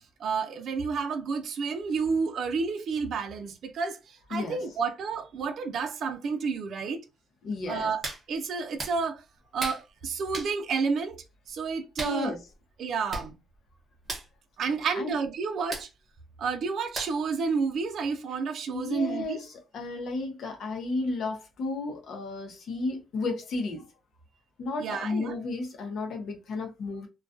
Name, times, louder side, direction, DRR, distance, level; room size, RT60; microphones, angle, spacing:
voice 1, 0.2-7.0 7.7-8.0 8.3-9.2 9.5-12.3 12.8-13.4 14.6-15.9 16.4-19.4 24.8-25.4, right 5 dB, 65° right, 0.5 m, -30 dB
voice 2, 4.3-4.6 7.4-7.9 12.0-12.4 14.9-15.2 18.7-23.9 24.6-27.1, left 3 dB, 70° left, 0.8 m, -33 dB
Hands, 8.0-8.2 8.8-8.9 9.6-9.8 10.3-10.5 12.0-12.2 12.8-12.9 13.1-13.3 13.5-13.7 14.0-14.3 15.7-15.9 16.9-17.3 17.7-17.8, right 2 dB, 35° right, 0.8 m, -35 dB
2.3 x 2.3 x 2.5 m
cardioid pair, 90°, 0 cm